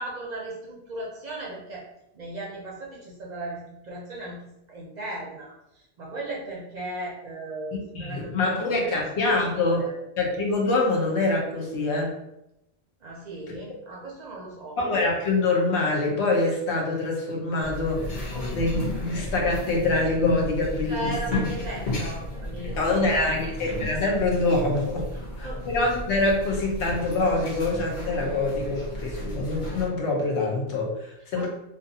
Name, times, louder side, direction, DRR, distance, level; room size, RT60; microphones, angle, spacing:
voice 1, 0.0-1.9 2.1-4.4 4.7-9.0 9.5-10.0 13.0-14.8 20.9-23.4 25.1-25.7 31.3-31.5, right 1 dB, 55° right, -3 dB, 0.5 m, -37 dB
voice 2, 7.7-9.9 10.2-12.1 14.8-18.1 18.5-21.4 22.8-25.1 25.4-31.5, left 2 dB, 85° left, -1 dB, 1.0 m, -25 dB
sound 1, 17.6-29.9, left 1 dB, 50° left, 0.8 m, -33 dB
2.5 x 2.3 x 2.6 m, 0.86 s
omnidirectional pair, 1.1 m